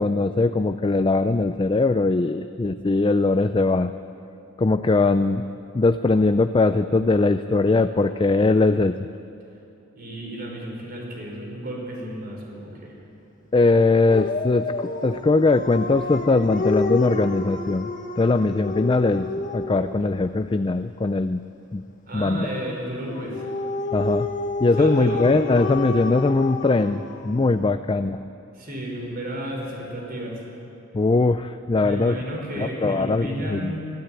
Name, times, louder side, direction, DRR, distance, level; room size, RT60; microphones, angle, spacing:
voice 1, 0.0-3.9 4.6-5.4 5.7-9.1 13.5-21.4 21.7-21.8 22.1-22.5 23.9-24.3 24.6-28.2 30.9-32.2 32.6-33.8, left 3 dB, 25° left, 10 dB, 0.4 m, -21 dB
voice 2, 9.9-13.0 22.1-23.5 24.8-25.4 28.5-30.4 31.8-33.9, right 1 dB, 50° right, 0 dB, 5.0 m, -33 dB
Dog, 14.1-19.9 23.1-27.7, left 2 dB, 40° left, 1.4 m, -29 dB
22.0 x 13.5 x 9.0 m, 2.8 s
head